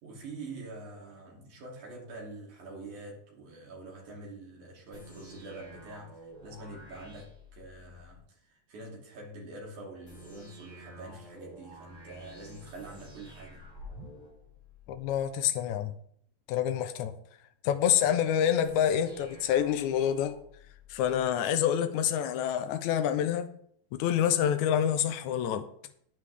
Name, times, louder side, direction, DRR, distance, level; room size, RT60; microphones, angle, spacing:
voice 1, 0.0-13.6, right 2 dB, 75° right, 4.4 m, -45 dB
sound 1, 4.9-8.2 10.1-15.3 18.6-21.3, equal, 30° left, 5.7 m, -51 dB
voice 2, 14.9-15.9 16.5-17.1 17.6-20.4 20.9-23.5 23.9-25.6, left 9 dB, 80° left, 2.1 m, -27 dB
13.5 x 9.5 x 3.5 m
omnidirectional pair, 3.5 m